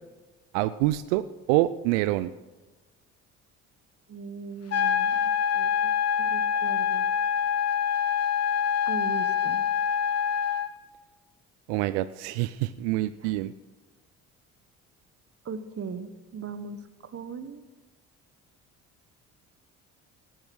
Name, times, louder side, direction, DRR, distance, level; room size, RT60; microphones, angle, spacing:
voice 1, 0.5-2.3 11.7-13.5, right 16 dB, 85° right, 14 dB, 0.5 m, -26 dB
voice 2, 4.1-5.9 6.2-7.1 8.8-9.7 13.2-13.3 15.4-17.6, right 5 dB, 40° right, 10 dB, 1.4 m, -39 dB
sound 1, 4.7-10.7, left 8 dB, 45° left, 1.2 m, -25 dB
13.5 x 11.0 x 6.3 m, 1.2 s
hypercardioid pair, 60°, 35 cm